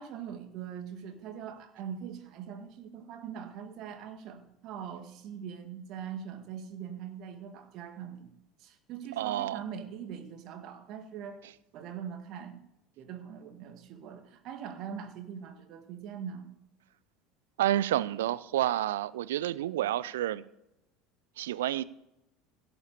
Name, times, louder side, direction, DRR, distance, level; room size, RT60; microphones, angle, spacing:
voice 1, 0.0-8.3 8.6-11.4 11.7-12.6 13.0-16.5, right 8 dB, 50° right, 7 dB, 1.9 m, -42 dB
voice 2, 9.2-9.6 17.6-20.4 21.4-21.8, right 13 dB, 70° right, 18 dB, 0.5 m, -29 dB
17.0 x 7.0 x 6.7 m, 0.88 s
figure-of-eight pair, 70°, 0 cm